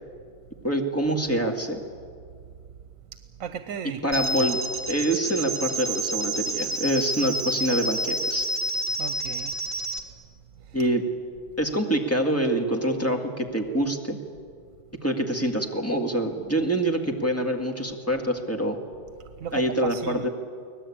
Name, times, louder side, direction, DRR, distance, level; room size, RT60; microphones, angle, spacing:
voice 1, 0.6-1.8 4.0-4.6 4.9-8.5 10.7-11.0 11.6-14.2 15.0-18.8 19.5-20.3, right 1 dB, 10° left, 2 dB, 2.1 m, -25 dB
voice 2, 3.1-4.0 9.0-9.6 10.6-10.8 19.4-20.3, right 8 dB, 85° right, 11 dB, 1.2 m, -35 dB
sound 1, 4.1-10.0, right 1 dB, 55° right, 2.4 m, -29 dB
24.0 x 18.0 x 8.7 m, 2.2 s
omnidirectional pair, 1.4 m